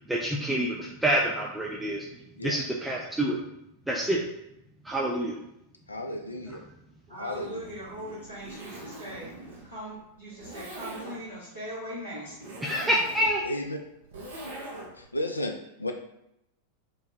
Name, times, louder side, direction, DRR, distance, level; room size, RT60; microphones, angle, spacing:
voice 1, 0.1-3.4 3.9-4.2 4.8-5.4 12.6-13.4, right 1 dB, 5° right, -3 dB, 0.3 m, -27 dB
voice 2, 5.9-6.6 7.2-7.6 13.4-13.8 15.0-15.9, left 1 dB, 80° left, 4 dB, 0.3 m, -33 dB
voice 3, 7.1-12.6, equal, 80° right, -11 dB, 0.9 m, -40 dB
Zipper (clothing), 7.2-15.1, right 2 dB, 60° right, 0.6 m, -43 dB
2.6 x 2.1 x 3.1 m, 0.83 s
figure-of-eight pair, 90°, 0 cm